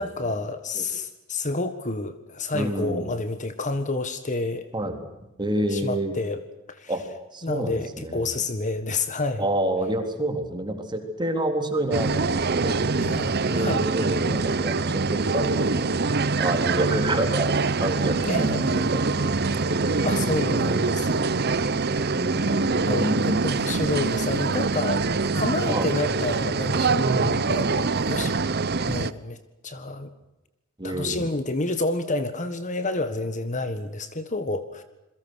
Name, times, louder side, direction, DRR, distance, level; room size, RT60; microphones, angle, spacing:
voice 1, 0.0-4.6 5.7-6.4 6.7-6.9 7.4-9.5 13.0-13.9 18.2-18.9 20.0-21.3 22.9-27.1 27.5-28.4 28.9-29.4 29.6-30.1 30.8-34.8, left 2 dB, 40° left, 10 dB, 1.6 m, -29 dB
voice 2, 2.5-3.1 4.7-5.0 5.4-6.2 6.9-7.0 7.3-8.3 9.4-12.7 13.5-15.7 16.3-17.5 17.8-19.3 19.7-20.1 20.4-21.8 22.1-23.3 25.6-25.9 27.0-27.4 30.8-31.3, right 1 dB, 20° right, 5 dB, 3.7 m, -28 dB
sound 1, 11.9-29.1, right 4 dB, 50° right, 0.9 m, -24 dB
28.0 x 22.5 x 6.5 m, 0.94 s
head